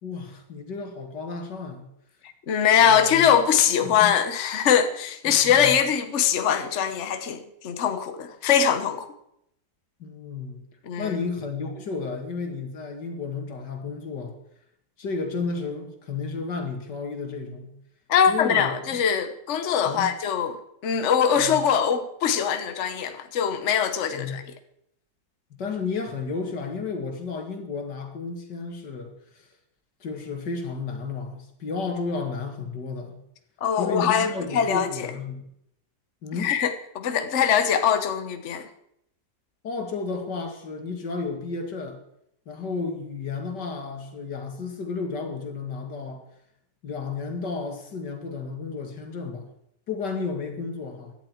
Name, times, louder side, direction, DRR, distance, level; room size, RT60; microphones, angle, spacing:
voice 1, 0.0-1.9 2.8-3.3 3.8-4.1 5.2-5.7 10.0-10.6 11.0-14.4 15.0-17.7 18.3-18.7 19.9-20.1 21.4-21.6 24.1-24.4 25.5-29.5 30.0-33.2 33.8-35.5 36.2-36.5 39.6-42.0 42.5-46.3 46.8-49.5 49.9-51.1, left 4 dB, 85° left, 2.7 m, -32 dB
voice 2, 2.5-9.1 10.8-11.2 18.1-24.4 33.6-35.1 36.4-38.7, left 8 dB, 50° left, 1.2 m, -22 dB
16.5 x 11.0 x 4.5 m
omnidirectional pair, 1.8 m